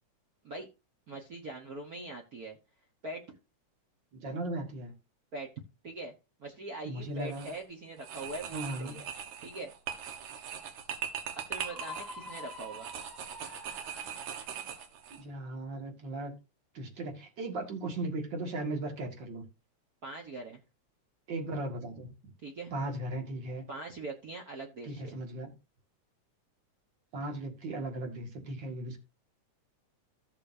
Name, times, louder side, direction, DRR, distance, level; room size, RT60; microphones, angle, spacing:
voice 1, 1.1-2.6 3.0-3.4 5.3-5.5 5.8-6.1 6.4-9.0 9.4-9.7 11.3-12.9 20.0-20.6 22.4-22.7 23.7-25.2, right 2 dB, 60° right, 1 dB, 0.9 m, -42 dB
voice 2, 4.1-4.9 6.8-7.5 8.5-9.0 15.1-16.3 16.7-19.4 21.3-22.1 22.7-23.6 24.8-25.5 27.1-29.0, right 2 dB, 40° right, 4 dB, 2.2 m, -37 dB
sound 1, 7.2-7.6 8.0-15.2, right 8 dB, 80° right, 2.6 m, -41 dB
Screaming, 11.6-14.5, left 2 dB, ahead, 0.7 m, -47 dB
15.0 x 6.7 x 2.7 m, 0.27 s
omnidirectional pair, 3.4 m